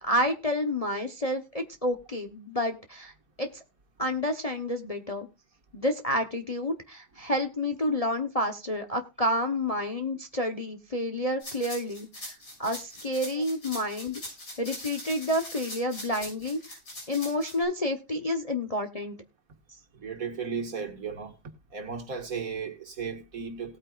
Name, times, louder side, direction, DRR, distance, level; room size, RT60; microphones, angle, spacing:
voice 1, 0.0-3.1 3.4-3.6 4.0-5.3 5.7-12.3 12.6-14.2 14.6-16.8 17.1-19.2, left 1 dB, 25° left, 1.0 m, -29 dB
sound 1, 11.4-17.5, left 1 dB, 80° left, 7.3 m, -41 dB
voice 2, 19.9-21.4 21.7-23.8, right 5 dB, 60° right, 2.3 m, -35 dB
18.5 x 8.9 x 2.5 m
omnidirectional pair, 1.7 m